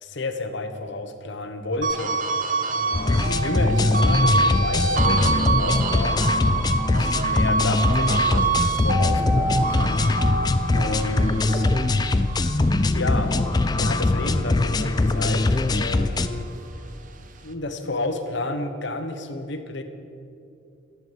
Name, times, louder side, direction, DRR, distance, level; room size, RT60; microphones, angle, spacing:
voice 1, 0.0-2.2 2.7-6.3 6.9-10.1 10.7-11.7 12.9-13.3 13.7-16.5 17.4-19.8, left 2 dB, 60° left, 7 dB, 1.0 m, -31 dB
sound 1, 1.8-14.4 14.8-16.5, right 3 dB, 40° right, 0.7 m, -27 dB
sound 2, 2.9-16.3, left 2 dB, 20° left, 0.3 m, -22 dB
12.5 x 7.1 x 7.5 m, 2.5 s
head